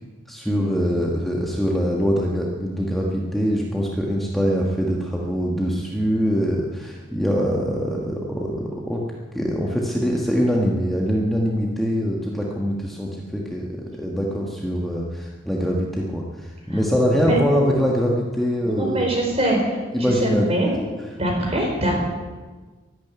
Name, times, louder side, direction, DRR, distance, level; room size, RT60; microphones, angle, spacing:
voice 1, 0.3-9.1 9.3-19.1 19.9-20.4, equal, ahead, -3 dB, 1.5 m, -23 dB
voice 2, 16.7-17.4 18.6-20.7 21.1-21.9, right 1 dB, 35° right, 0 dB, 4.7 m, -24 dB
12.5 x 12.0 x 9.6 m, 1.3 s
head